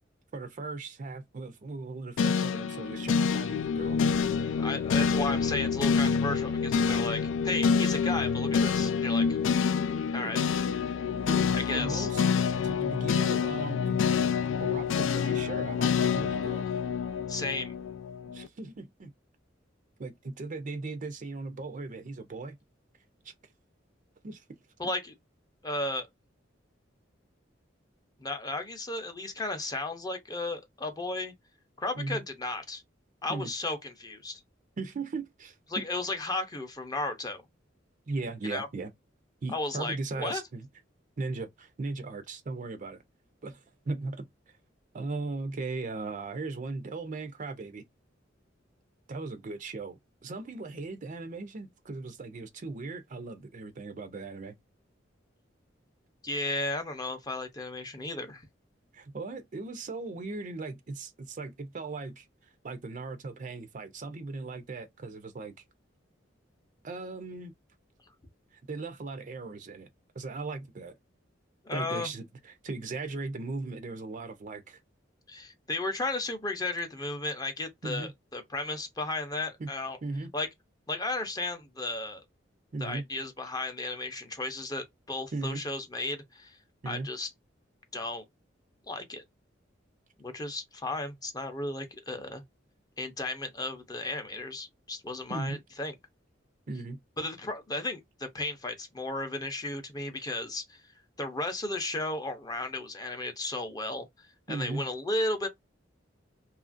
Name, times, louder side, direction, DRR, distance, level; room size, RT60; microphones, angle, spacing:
voice 1, 0.3-4.0 5.0-5.1 10.2-10.3 11.3-12.2 12.5-14.3 14.6-16.6 18.3-19.1 20.0-22.6 23.2-23.3 24.2-24.4 32.0-32.2 33.3-33.5 34.8-35.8 38.1-38.9 39.4-40.7 41.2-43.0 43.4-44.3 44.9-47.8 49.1-54.5 58.9-65.5 66.8-67.5 68.5-69.9 70.1-70.9 71.7-74.8 77.8-78.1 79.6-79.7 80.0-80.3 82.7-83.1 85.3-85.6 86.8-87.1 95.3-95.6 96.7-97.0 104.5-104.9, right 3 dB, 45° right, 0.5 m, -38 dB
sound 1, 2.2-18.5, left 6 dB, 90° left, 0.3 m, -27 dB
voice 2, 4.6-9.3 10.1-10.4 11.5-12.1 17.3-17.7 24.8-25.1 25.6-26.1 28.2-31.3 31.8-32.8 33.2-34.4 35.7-37.4 38.5-38.7 39.5-40.4 56.2-58.5 71.6-72.1 75.3-80.0 80.3-80.5 80.9-82.2 82.8-86.6 86.9-87.3 87.9-88.2 88.9-89.2 90.2-92.4 93.0-95.9 97.2-100.8 101.2-104.1 104.5-105.5, left 2 dB, 20° left, 0.6 m, -34 dB
2.8 x 2.4 x 2.4 m
head